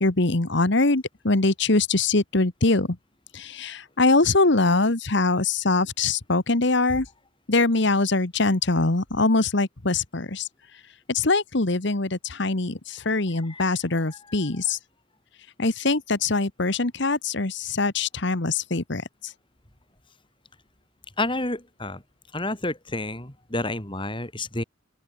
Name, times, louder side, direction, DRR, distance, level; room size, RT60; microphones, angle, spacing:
voice 1, 0.0-3.0 3.3-7.1 7.5-10.5 11.1-14.8 15.6-19.3, left 3 dB, 60° left, 1.5 m, -23 dB
voice 2, 14.1-14.5 21.2-22.0 22.3-24.6, left 2 dB, 25° left, 4.2 m, -30 dB
open air
head